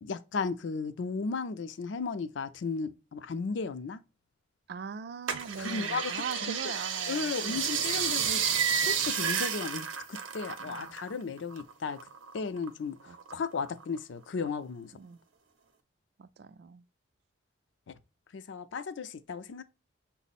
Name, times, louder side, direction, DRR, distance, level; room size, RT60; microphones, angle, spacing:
voice 1, 0.0-4.0 5.6-6.1 6.4-6.7 7.1-12.0 12.3-14.9 18.3-19.6, left 4 dB, 70° left, 0.4 m, -35 dB
voice 2, 4.7-7.7 10.6-11.0 13.1-13.4 15.0-15.2 16.2-16.8, right 6 dB, 55° right, 0.3 m, -42 dB
sound 1, 5.3-11.1 11.4-12.7 13.1-14.0 14.5-14.6, right 7 dB, 90° right, 0.6 m, -31 dB
6.1 x 2.0 x 4.1 m
head